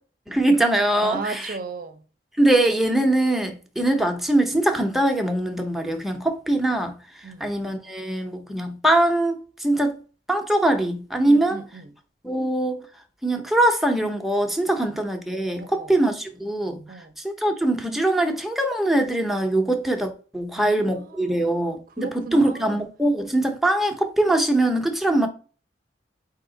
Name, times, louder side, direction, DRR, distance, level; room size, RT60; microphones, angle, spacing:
voice 1, 0.3-1.5 2.4-10.0 10.3-11.6 12.2-12.8 13.2-25.3, right 1 dB, ahead, 0.7 m, -22 dB
voice 2, 1.0-2.0 7.2-7.5 11.2-11.9 15.5-15.9 16.9-17.1 20.6-22.8, right 4 dB, 50° right, 0.6 m, -36 dB
4.7 x 2.8 x 3.8 m
head